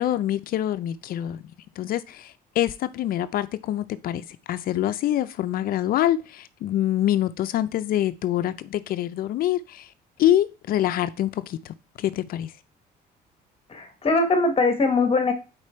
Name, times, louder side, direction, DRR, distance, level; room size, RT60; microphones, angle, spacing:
voice 1, 0.0-1.4 1.8-9.9 10.2-12.5, left 12 dB, 60° left, 0.4 m, -25 dB
voice 2, 13.7-15.3, left 3 dB, 35° left, 1.2 m, -21 dB
4.8 x 4.5 x 4.3 m
cardioid pair, 110°, 17 cm